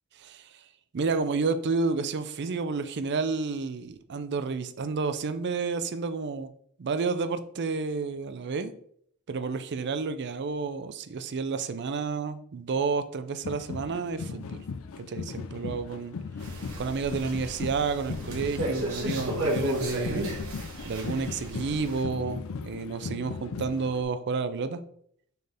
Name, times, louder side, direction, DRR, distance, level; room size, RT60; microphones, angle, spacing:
voice 1, 0.9-6.5 6.8-8.7 9.3-14.6 15.0-16.2 16.8-20.3 20.8-22.4 22.7-24.8, right 4 dB, 50° right, 11 dB, 0.5 m, -30 dB
sound 1, 13.4-24.0, left 4 dB, 65° left, 0.4 m, -38 dB
sound 2, 16.4-22.0, right 1 dB, 70° right, 2.0 m, -33 dB
6.5 x 4.4 x 3.4 m, 0.65 s
head